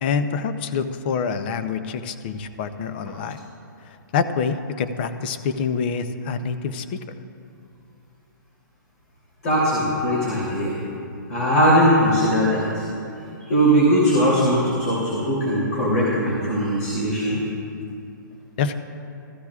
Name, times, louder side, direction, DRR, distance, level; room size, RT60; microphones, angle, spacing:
voice 1, 0.0-3.4 4.1-7.0 18.6-18.7, left 6 dB, 30° left, 11 dB, 0.5 m, -26 dB
voice 2, 9.4-10.8 11.3-12.8 13.4-17.4, equal, 50° left, -6 dB, 3.0 m, -20 dB
14.5 x 14.5 x 2.4 m, 2.6 s
hypercardioid pair, 165°, 11 cm